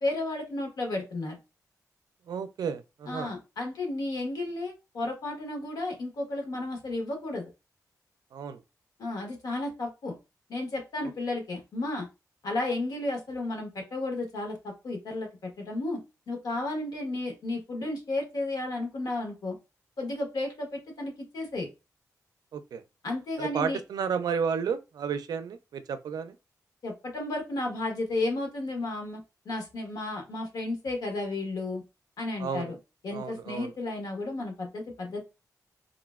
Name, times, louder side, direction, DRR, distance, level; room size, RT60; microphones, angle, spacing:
voice 1, 0.0-1.3 3.1-7.5 9.0-10.1 10.5-12.1 12.4-16.0 16.3-19.6 20.0-21.7 23.0-23.8 26.8-31.8 32.2-32.8 33.0-35.2, left 2 dB, 80° left, 1.1 m, -33 dB
voice 2, 2.3-3.3 8.3-8.6 22.5-22.8 23.4-26.4 32.4-32.7 33.1-33.7, right 6 dB, 85° right, 0.4 m, -32 dB
3.7 x 2.0 x 2.3 m
cardioid pair, 60°, 7 cm